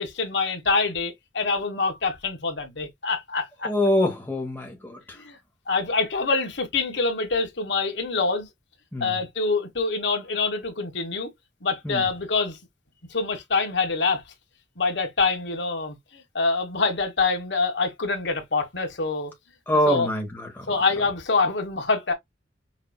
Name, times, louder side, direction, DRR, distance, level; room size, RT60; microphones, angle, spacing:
voice 1, 0.0-3.7 5.1-5.4 5.7-8.5 9.0-11.3 11.6-12.6 13.1-14.2 14.8-19.3 19.9-20.1 20.7-22.1, left 4 dB, 70° left, 1.4 m, -25 dB
voice 2, 3.6-5.0 8.9-9.1 11.8-12.0 19.7-20.6, equal, 10° left, 1.2 m, -24 dB
5.8 x 2.6 x 2.3 m
head